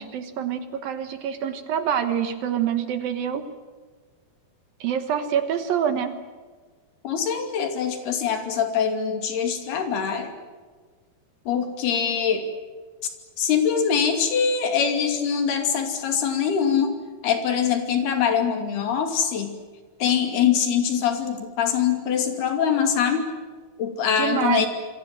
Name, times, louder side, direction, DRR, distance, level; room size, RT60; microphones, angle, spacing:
voice 1, 0.0-3.5 4.8-6.2 24.1-24.7, right 8 dB, 65° right, 9 dB, 2.8 m, -26 dB
voice 2, 7.0-10.3 11.5-12.5 13.4-16.9 17.2-19.5 20.0-23.3 23.8-24.7, left 7 dB, 70° left, 5 dB, 4.6 m, -23 dB
28.0 x 23.5 x 7.7 m, 1.4 s
omnidirectional pair, 4.9 m